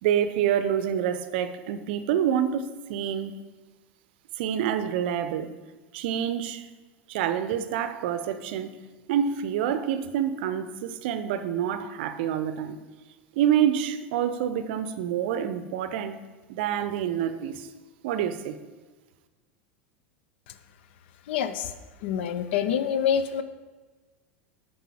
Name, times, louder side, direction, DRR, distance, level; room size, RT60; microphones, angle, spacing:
voice 1, 0.0-3.4 4.4-5.5 5.9-6.6 7.1-8.8 9.1-12.8 13.4-16.2 16.5-17.7 18.0-18.6, right 9 dB, 55° right, 12 dB, 0.6 m, -27 dB
voice 2, 21.3-21.7 22.0-23.4, left 8 dB, 60° left, 12 dB, 0.6 m, -26 dB
9.0 x 5.3 x 4.3 m, 1.3 s
figure-of-eight pair, 80°, 7 cm